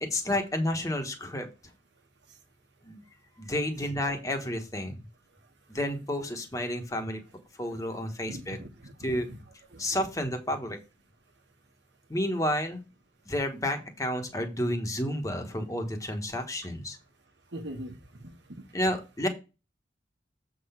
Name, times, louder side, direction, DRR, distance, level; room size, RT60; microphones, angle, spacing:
voice 1, 0.0-1.5 2.8-3.0 3.4-5.0 5.7-7.2 7.6-8.6 9.0-9.3 9.8-10.8 12.1-12.8 13.3-17.0 18.7-19.3, left 1 dB, 20° left, 1.3 m, -30 dB
voice 2, 8.3-9.4 9.7-9.8 17.5-18.6, right 1 dB, 70° right, 1.3 m, -42 dB
7.7 x 3.9 x 5.7 m
head